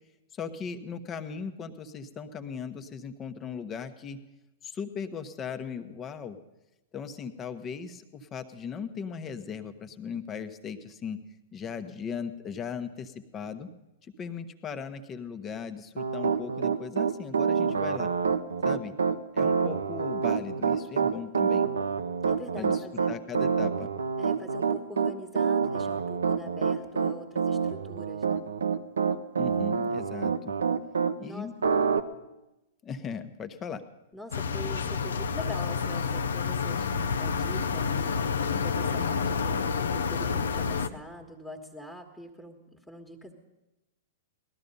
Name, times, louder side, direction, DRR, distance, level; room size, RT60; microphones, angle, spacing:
voice 1, 0.3-4.2 4.6-6.4 6.9-11.2 11.5-13.7 14.2-18.1 18.6-19.0 19.3-21.7 22.6-23.9 29.4-30.5 31.2-31.5 32.8-33.8, left 6 dB, 25° left, 10 dB, 1.1 m, -38 dB
Piano, 16.0-31.1 31.6-32.0, right 6 dB, 80° right, 0.7 m, -27 dB
voice 2, 22.2-23.2 24.2-28.4 31.2-31.5 34.1-43.3, equal, 5° left, 1 dB, 1.6 m, -44 dB
sound 1, 34.3-40.9, left 5 dB, 75° left, 0.7 m, -29 dB
18.5 x 12.5 x 5.4 m, 1.0 s
hypercardioid pair, 110°, 0 cm